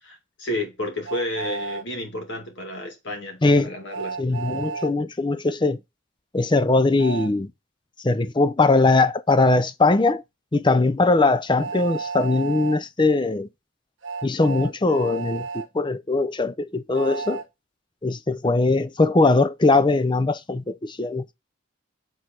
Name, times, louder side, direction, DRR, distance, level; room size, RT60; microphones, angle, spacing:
voice 1, 0.0-4.2, left 1 dB, 60° left, 2.4 m, -31 dB
Train, 1.0-1.8 3.9-4.9 7.0-7.3 9.4-9.5 11.6-12.8 14.0-15.7 16.9-17.5, right 5 dB, 65° right, 1.4 m, -32 dB
voice 2, 4.2-5.8 6.3-7.5 8.0-10.2 10.5-13.5 14.2-17.4 18.0-21.2, left 3 dB, 20° left, 0.5 m, -20 dB
7.8 x 3.9 x 4.4 m
head